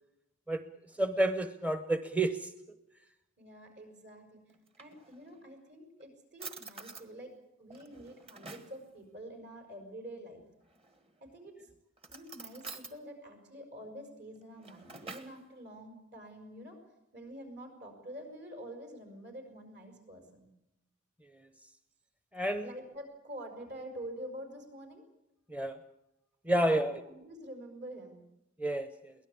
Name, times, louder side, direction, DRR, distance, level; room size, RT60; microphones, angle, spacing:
voice 1, 1.0-2.5 22.3-22.7 25.5-25.8 26.4-26.9 28.6-29.1, right 1 dB, 5° right, 9 dB, 0.8 m, -30 dB
voice 2, 3.4-4.4 4.8-7.3 7.6-10.4 11.2-11.7 12.1-16.8 17.1-20.5 22.6-25.0 26.5-28.3, right 1 dB, 60° right, 4 dB, 5.6 m, -47 dB
Drawer open or close, 4.5-5.5 6.0-6.1 6.4-7.1 7.7-8.8 10.7-11.2 12.0-13.0 14.4-15.4, right 4 dB, 30° right, 1.6 m, -48 dB
23.0 x 18.0 x 8.6 m, 0.86 s
head